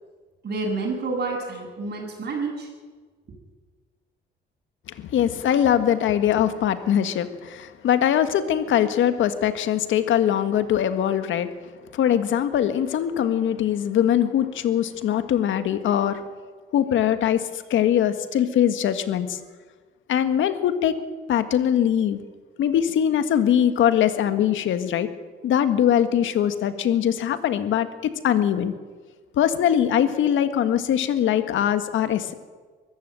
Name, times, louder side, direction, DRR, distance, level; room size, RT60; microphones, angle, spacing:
voice 1, 0.4-2.7, right 3 dB, 50° right, -5 dB, 7.6 m, -29 dB
voice 2, 4.9-11.5 11.9-16.2 16.7-19.4 20.1-21.0 21.3-22.2 22.6-25.1 25.4-28.7 29.4-32.3, left 10 dB, 75° left, 10 dB, 1.8 m, -22 dB
23.5 x 14.0 x 9.1 m, 1.4 s
cardioid pair, 90°, 20 cm